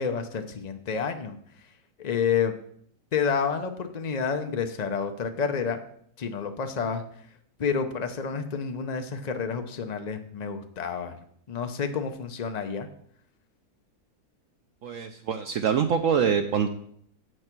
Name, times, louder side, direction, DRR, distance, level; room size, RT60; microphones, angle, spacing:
voice 1, 0.0-1.3 2.0-2.5 3.1-5.8 6.2-7.0 7.6-11.2 11.5-12.9, left 6 dB, 75° left, 7 dB, 0.3 m, -29 dB
voice 2, 14.8-16.7, right 7 dB, 65° right, 7 dB, 0.8 m, -25 dB
7.7 x 6.4 x 5.9 m, 0.66 s
omnidirectional pair, 1.7 m